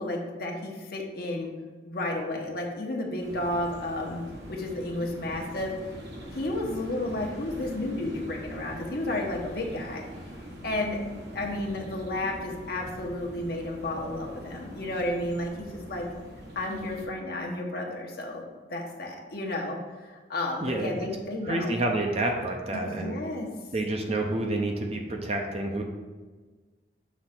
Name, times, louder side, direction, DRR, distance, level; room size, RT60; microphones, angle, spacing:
voice 1, 0.0-1.5 1.9-4.2 4.5-5.7 6.3-10.0 10.6-11.0 11.3-16.1 16.5-18.4 18.7-21.7 22.7-23.5, left 1 dB, 50° left, 0 dB, 1.0 m, -32 dB
sound 1, 3.2-17.1, equal, 60° right, 1.2 m, -43 dB
voice 2, 20.6-20.9 21.4-23.2 23.7-25.8, right 2 dB, 30° right, 2 dB, 0.5 m, -28 dB
6.2 x 3.2 x 5.8 m, 1.4 s
head